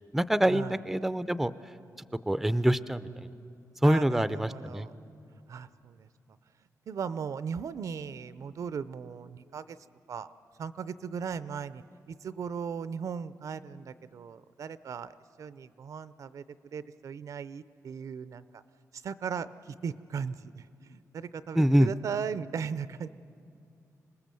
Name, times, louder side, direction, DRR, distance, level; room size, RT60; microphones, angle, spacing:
voice 1, 0.1-1.5 2.3-3.3 3.8-4.9 21.5-21.9, right 1 dB, 5° right, 14 dB, 0.5 m, -25 dB
voice 2, 3.8-4.9 5.5-6.1 6.9-9.8 10.1-10.3 10.6-15.1 15.4-16.4 16.7-18.6 19.0-23.1, right 6 dB, 65° right, 15 dB, 0.6 m, -37 dB
26.5 x 19.0 x 7.7 m, 2.5 s
wide cardioid pair, 130°, 6 cm